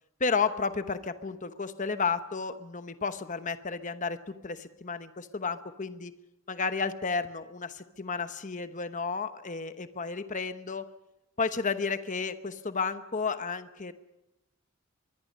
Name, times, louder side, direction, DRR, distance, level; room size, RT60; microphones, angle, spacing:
voice 1, 0.2-6.1 6.5-10.9 11.4-13.9, left 5 dB, 35° left, 11 dB, 1.0 m, -32 dB
25.0 x 22.0 x 5.4 m, 0.91 s
head